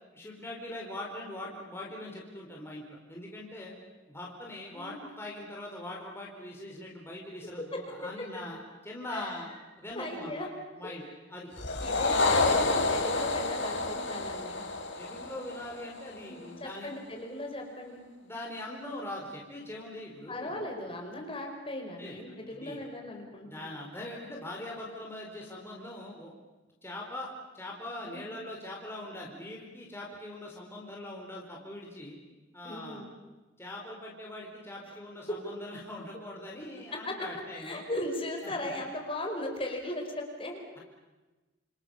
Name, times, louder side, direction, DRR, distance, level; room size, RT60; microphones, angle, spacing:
voice 1, 0.1-3.7 4.1-8.6 8.8-9.5 9.8-10.5 10.8-11.0 11.3-11.5 15.0-16.9 18.2-20.7 22.0-22.8 23.4-26.3 26.8-32.2 32.5-33.0 33.6-37.8 38.4-38.7, left 1 dB, 15° left, -2 dB, 4.6 m, -42 dB
voice 2, 4.7-5.1 7.4-7.8 9.1-9.3 9.9-10.5 10.8-10.9 11.8-14.6 16.1-18.0 20.3-23.7 28.0-28.2 32.6-33.1 34.9-35.0 36.9-40.6, left 1 dB, 30° left, 2 dB, 5.0 m, -38 dB
sound 1, 11.6-16.2, left 3 dB, 70° left, 3.7 m, -29 dB
29.5 x 28.0 x 7.2 m, 1.2 s
head